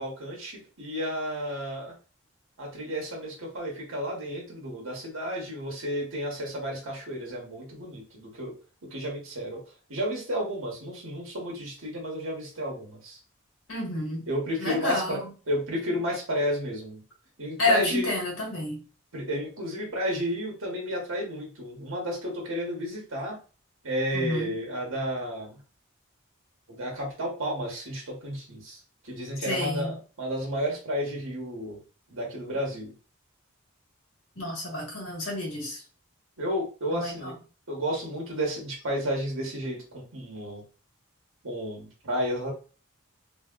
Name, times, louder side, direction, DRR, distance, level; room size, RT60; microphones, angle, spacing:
voice 1, 0.0-1.9 2.6-8.5 8.8-9.6 9.9-13.2 14.3-15.2 15.5-17.0 17.4-18.1 19.1-23.4 23.8-25.6 26.7-31.8 32.1-32.9 36.4-37.3 37.7-40.6 41.4-42.5, equal, 75° right, -1 dB, 1.3 m, -32 dB
voice 2, 13.7-14.3 14.6-15.3 17.6-18.8 24.1-24.5 29.4-29.9 34.3-35.8 36.9-37.3, left 2 dB, 70° left, -3 dB, 1.6 m, -29 dB
3.2 x 2.6 x 2.4 m, 0.36 s
head